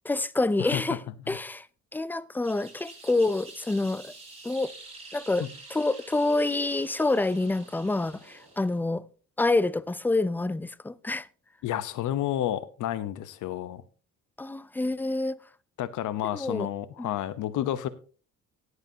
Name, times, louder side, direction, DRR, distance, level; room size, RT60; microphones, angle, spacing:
voice 1, 0.0-1.0 1.3-1.7 1.9-4.1 4.4-4.7 5.1-5.4 5.7-9.0 9.4-11.3 14.4-15.4 16.3-16.7 17.0-17.1, left 2 dB, 5° left, 0.4 m, -27 dB
voice 2, 0.6-1.0 1.3-1.4 5.4-5.5 11.6-13.8 15.8-17.9, left 12 dB, 80° left, 0.9 m, -30 dB
sound 1, 2.4-8.8, right 3 dB, 20° right, 6.1 m, -48 dB
18.0 x 8.0 x 2.8 m
cardioid pair, 90°, 30 cm